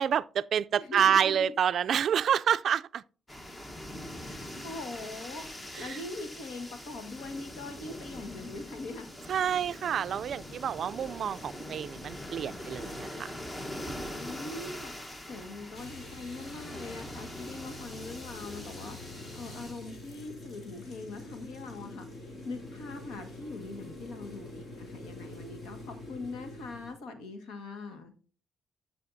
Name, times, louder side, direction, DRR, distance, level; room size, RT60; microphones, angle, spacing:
voice 1, 0.0-3.0 5.8-5.9 9.3-13.3, right 8 dB, 60° right, 0.3 m, -28 dB
voice 2, 0.7-1.5 4.2-9.1 14.1-28.1, left 2 dB, 90° left, 1.6 m, -42 dB
sound 1, 3.3-19.7, left 1 dB, 20° left, 1.2 m, -43 dB
sound 2, 15.7-26.9, left 2 dB, 55° left, 3.0 m, -46 dB
13.5 x 5.7 x 2.6 m
cardioid pair, 90°, 0 cm